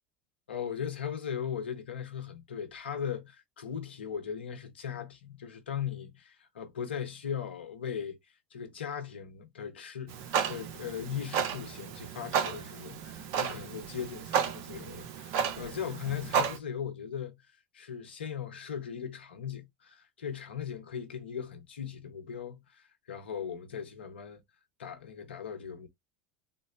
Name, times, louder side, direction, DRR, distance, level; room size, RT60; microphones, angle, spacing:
voice 1, 0.5-8.2 8.5-17.3 17.7-24.4 24.8-25.9, left 8 dB, 80° left, 0.9 m, -38 dB
Clock, 10.1-16.6, right 7 dB, 55° right, 0.7 m, -33 dB
3.8 x 2.0 x 2.6 m
figure-of-eight pair, 75°, 6 cm